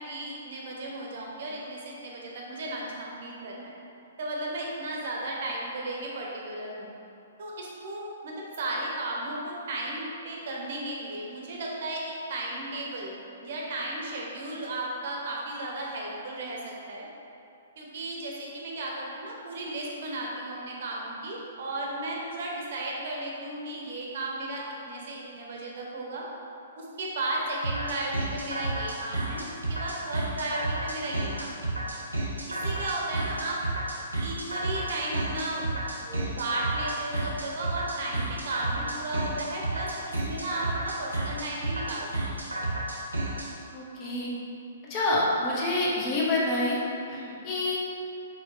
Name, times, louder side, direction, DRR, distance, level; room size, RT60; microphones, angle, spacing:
voice 1, 0.0-3.8 4.2-6.9 7.4-13.1 13.4-17.1 17.8-26.2 26.8-31.6 32.5-33.6 34.2-35.8 36.0-42.1 47.1-47.5, right 2 dB, 50° right, -2 dB, 0.7 m, -34 dB
sound 1, 27.6-43.5, right 2 dB, 85° right, 0.8 m, -31 dB
voice 2, 43.7-44.3 44.9-46.8 47.1-47.2 47.4-47.8, left 2 dB, 30° left, -5 dB, 0.9 m, -27 dB
4.4 x 4.1 x 2.6 m, 2.7 s
figure-of-eight pair, 120°, 0 cm